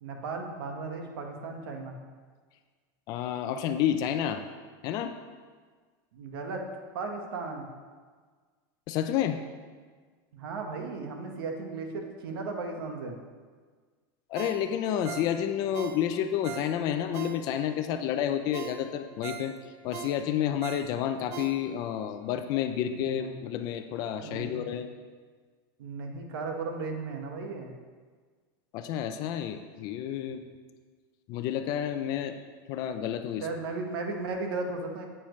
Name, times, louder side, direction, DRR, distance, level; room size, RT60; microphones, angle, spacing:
voice 1, 0.0-1.9 6.1-6.6 6.9-7.7 10.3-13.2 22.9-23.3 24.2-24.6 25.8-27.7 33.4-35.1, right 3 dB, 80° right, 3 dB, 1.5 m, -36 dB
voice 2, 3.1-4.4 4.8-5.1 8.9-9.4 14.3-19.5 19.8-24.9 28.7-30.4 31.3-32.4 32.7-33.5, left 10 dB, 30° left, 8 dB, 0.5 m, -30 dB
Ringtone, 14.3-17.8 18.2-18.3 18.5-22.0 22.4-22.5, right 9 dB, 45° right, 0.6 m, -42 dB
9.8 x 8.8 x 3.2 m, 1.5 s
supercardioid pair, 175°, 12 cm